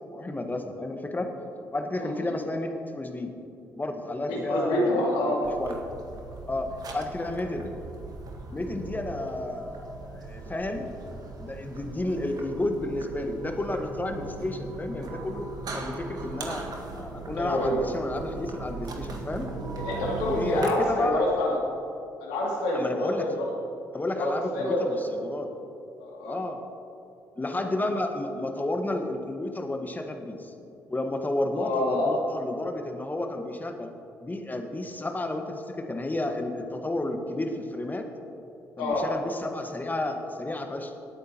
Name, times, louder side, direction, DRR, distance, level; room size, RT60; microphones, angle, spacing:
voice 1, 0.1-1.3 1.7-3.3 3.8-5.8 6.5-7.7 8.5-10.9 11.4-16.7 16.9-19.5 20.2-21.2 22.7-23.4 23.9-25.5 26.2-26.6 27.4-30.5 30.9-33.9 34.2-38.1 38.8-40.9, left 2 dB, 20° left, 4 dB, 1.4 m, -31 dB
voice 2, 2.0-2.3 4.3-5.4 17.3-17.8 19.8-21.5 22.2-23.5 24.2-25.0 26.0-26.4 31.6-32.2 38.8-39.1, left 1 dB, 80° left, -3 dB, 2.5 m, -27 dB
sound 1, 5.4-20.7, right 3 dB, 50° right, 1.7 m, -39 dB
17.5 x 9.0 x 3.0 m, 2.7 s
hypercardioid pair, 50°, 8 cm